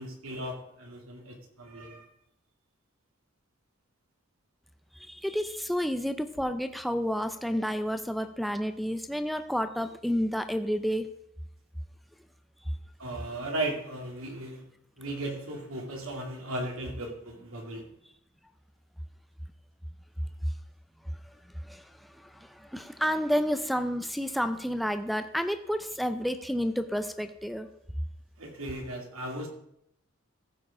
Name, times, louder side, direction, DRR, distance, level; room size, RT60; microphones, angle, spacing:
voice 1, 0.0-2.0 13.0-14.6 15.0-17.9 28.4-29.5, right 1 dB, 80° right, 1 dB, 2.3 m, -36 dB
voice 2, 5.1-11.1 21.6-21.9 22.2-27.7, equal, ahead, 8 dB, 0.5 m, -30 dB
14.5 x 4.9 x 4.9 m, 0.74 s
head